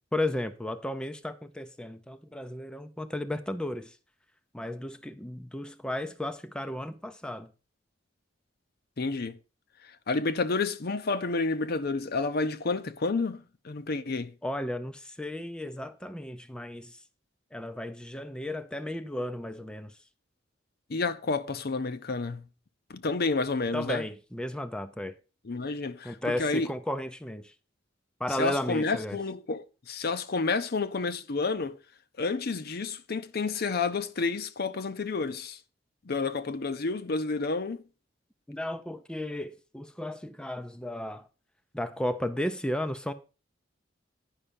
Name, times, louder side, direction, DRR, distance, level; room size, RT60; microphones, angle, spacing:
voice 1, 0.1-3.9 4.5-7.5 14.4-16.9 17.5-19.9 23.7-25.1 26.0-27.5 28.2-29.2 38.5-41.3 41.7-43.1, left 1 dB, 5° left, 0.5 m, -34 dB
voice 2, 9.0-9.4 9.8-14.3 20.9-22.4 22.9-24.0 25.4-26.7 28.3-31.8 32.2-35.6 36.1-37.8, left 3 dB, 55° left, 0.7 m, -30 dB
10.0 x 5.5 x 5.2 m
head